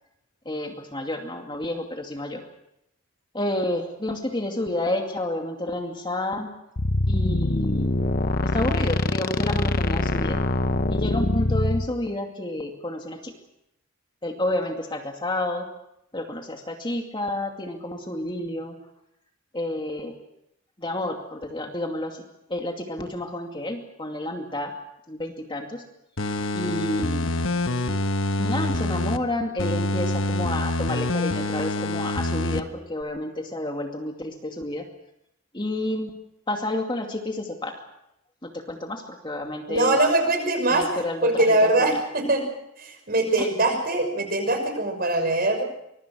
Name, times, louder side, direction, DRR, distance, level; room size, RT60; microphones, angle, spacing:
voice 1, 0.5-2.4 3.3-6.5 7.1-8.0 8.4-10.4 10.9-13.3 14.2-15.7 16.1-18.8 19.5-20.1 20.8-22.2 22.5-24.7 25.1-25.8 26.5-27.3 28.4-34.9 35.5-36.1 36.5-37.8 38.4-40.0 40.7-42.0 43.4-43.5, left 1 dB, 25° left, 3 dB, 2.4 m, -30 dB
sound 1, 6.8-11.9, left 2 dB, 45° left, 0.9 m, -24 dB
sound 2, 26.2-29.2 29.6-32.6 33.0-33.1, left 2 dB, 70° left, 1.3 m, -26 dB
voice 2, 39.7-40.9 41.2-42.5 42.8-45.6, right 2 dB, 45° right, 6 dB, 6.2 m, -22 dB
24.5 x 23.0 x 6.3 m, 0.82 s
head